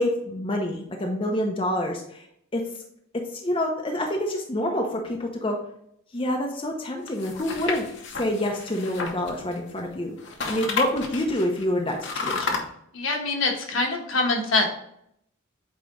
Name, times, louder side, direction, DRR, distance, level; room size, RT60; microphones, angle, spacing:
voice 1, 0.0-2.2 2.5-2.6 3.3-5.6 6.1-7.9 8.2-10.2 10.5-12.6, left 1 dB, 25° left, 1 dB, 0.7 m, -27 dB
sound 1, 7.1-9.9 10.2-12.6, left 4 dB, 60° left, 0.9 m, -32 dB
voice 2, 12.9-14.7, left 3 dB, 75° left, 1 dB, 1.3 m, -24 dB
8.5 x 3.0 x 3.8 m, 0.73 s
head